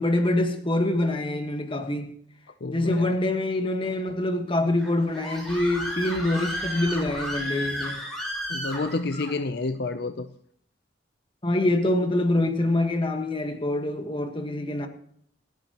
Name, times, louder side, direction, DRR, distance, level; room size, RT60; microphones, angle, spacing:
voice 1, 0.0-2.1 2.7-7.9 11.4-14.9, left 1 dB, 30° left, 1.5 m, -25 dB
voice 2, 2.6-3.1 8.5-10.3, left 3 dB, 60° left, 0.6 m, -29 dB
Screaming, 4.8-9.3, equal, ahead, 5.5 m, -33 dB
27.0 x 9.7 x 3.0 m
head